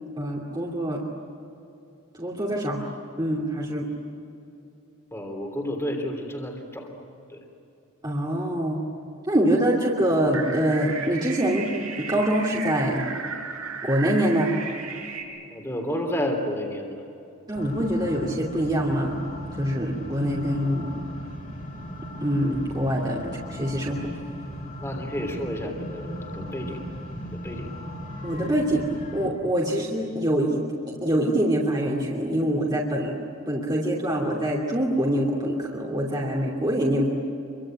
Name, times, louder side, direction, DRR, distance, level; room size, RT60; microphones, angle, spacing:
voice 1, 0.2-1.0 2.2-2.8 3.2-3.9 8.0-8.8 9.3-11.7 12.0-13.0 13.8-14.5 17.5-19.1 19.6-20.9 22.2-24.1 28.2-30.6 30.9-33.2 33.5-37.1, right 1 dB, 20° right, -4 dB, 2.7 m, -24 dB
voice 2, 5.1-6.9 7.3-7.4 15.5-17.0 24.8-26.8 27.2-27.7, equal, 10° left, 2 dB, 3.1 m, -31 dB
sound 1, 10.3-15.2, right 5 dB, 80° right, 5.1 m, -35 dB
sound 2, 17.5-29.3, equal, 40° left, 3.8 m, -37 dB
27.5 x 24.0 x 9.0 m, 2.8 s
head